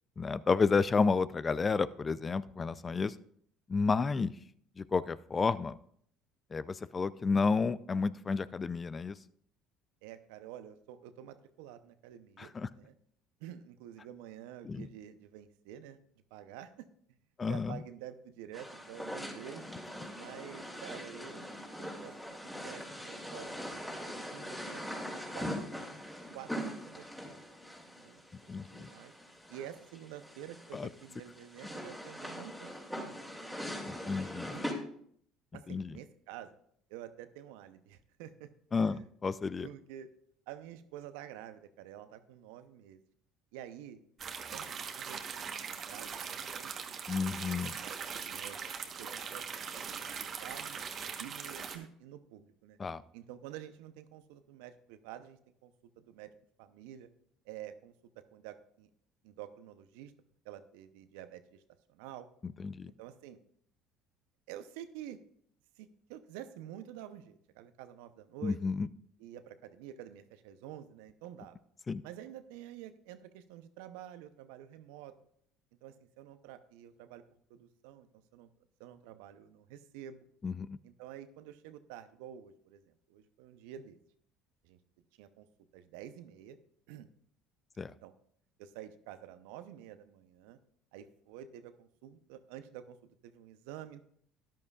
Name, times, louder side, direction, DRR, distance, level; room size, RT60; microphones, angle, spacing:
voice 1, 0.2-3.1 3.7-4.3 4.8-5.8 6.5-9.2 12.4-12.7 14.6-14.9 17.4-17.8 28.5-28.9 30.7-30.9 33.9-34.5 35.7-35.9 38.7-39.7 47.1-47.7 52.8-53.0 62.6-62.9 68.4-68.9 71.9-72.0 80.4-80.7 87.8-87.9, left 4 dB, 30° left, 17 dB, 0.4 m, -31 dB
voice 2, 10.0-12.9 13.4-16.0 16.3-16.9 17.5-19.7 20.1-21.5 21.8-23.8 24.3-25.9 26.3-27.4 28.0-29.1 29.5-33.2 34.5-34.6 35.5-36.5 36.9-39.0 39.6-40.1 40.5-43.0 43.5-44.0 44.5-47.2 47.7-48.6 49.0-50.8 51.2-52.8 53.1-56.3 56.6-57.1 57.4-58.9 59.2-60.1 60.4-61.6 61.9-62.3 63.0-63.4 64.5-65.2 65.8-68.6 69.2-71.6 72.0-75.1 75.8-77.2 77.5-78.5 78.8-80.3 80.8-84.0 84.6-84.8 85.2-85.5 85.7-86.6 86.9-87.1 87.9-88.1 88.6-90.6 90.9-94.0, right 11 dB, 75° right, 11 dB, 0.7 m, -49 dB
sound 1, 18.5-34.7, equal, 5° left, 2.8 m, -42 dB
sound 2, 44.2-51.8, right 6 dB, 45° right, 1.2 m, -41 dB
13.0 x 10.5 x 2.4 m, 0.65 s
hypercardioid pair, 70°, 0 cm